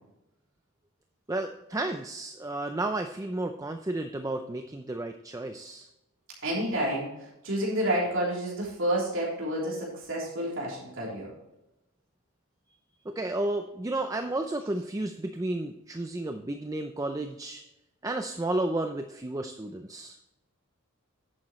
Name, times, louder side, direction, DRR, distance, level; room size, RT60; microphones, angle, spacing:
voice 1, 1.3-5.9 13.1-17.6 18.0-20.2, right 2 dB, 15° right, 6 dB, 0.5 m, -32 dB
voice 2, 6.4-7.1 7.4-11.3, right 1 dB, 60° right, -4 dB, 3.4 m, -29 dB
10.5 x 8.8 x 3.1 m, 0.91 s
head